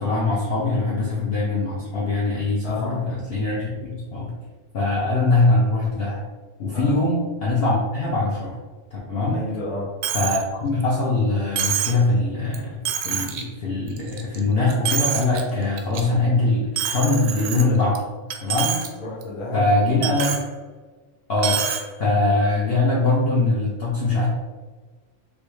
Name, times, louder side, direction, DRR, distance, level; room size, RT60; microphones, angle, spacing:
voice 1, 0.0-4.3 4.7-6.2 6.6-8.6 8.9-9.4 10.1-18.0 18.4-18.8 19.5-20.4 21.3-21.6 22.0-24.3, left 2 dB, 55° left, -6 dB, 0.8 m, -22 dB
voice 2, 2.6-3.1 6.7-7.0 9.3-9.9 19.0-19.6 20.0-20.2, left 2 dB, 25° left, -6 dB, 0.9 m, -31 dB
Coin (dropping), 10.0-10.4 10.8-10.9 11.6-12.0 12.5-12.6 12.9-13.4 13.9-14.4 14.7-15.4 15.8-16.0 16.8-18.0 18.3-18.9 19.2-19.3 20.0-20.4 21.4-21.8, right 9 dB, 85° right, 1.0 m, -26 dB
3.4 x 2.7 x 3.1 m, 1.3 s
omnidirectional pair, 1.4 m